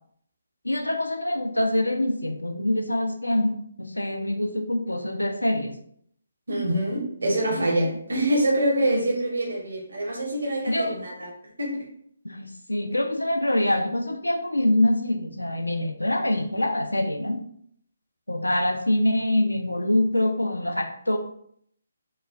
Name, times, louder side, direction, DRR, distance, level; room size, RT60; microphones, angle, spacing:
voice 1, 0.6-5.8 7.6-7.7 8.9-9.0 10.7-10.9 12.2-17.4 18.3-21.2, left 1 dB, 80° left, 5 dB, 0.4 m, -25 dB
voice 2, 6.5-11.3 11.6-11.8, right 1 dB, 65° right, -2 dB, 0.7 m, -25 dB
2.9 x 2.1 x 2.4 m, 0.66 s
figure-of-eight pair, 145°, 0 cm